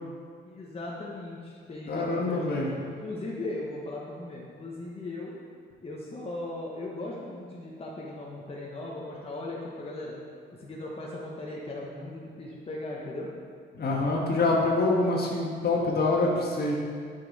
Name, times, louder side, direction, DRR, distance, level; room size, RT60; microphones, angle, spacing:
voice 1, 0.4-5.3 5.8-10.2 10.6-13.3, left 2 dB, 30° left, -4 dB, 1.1 m, -38 dB
voice 2, 1.9-2.7 13.7-16.8, left 2 dB, 50° left, -2 dB, 1.5 m, -25 dB
8.2 x 5.6 x 4.1 m, 2.1 s
cardioid pair, 90°, 20 cm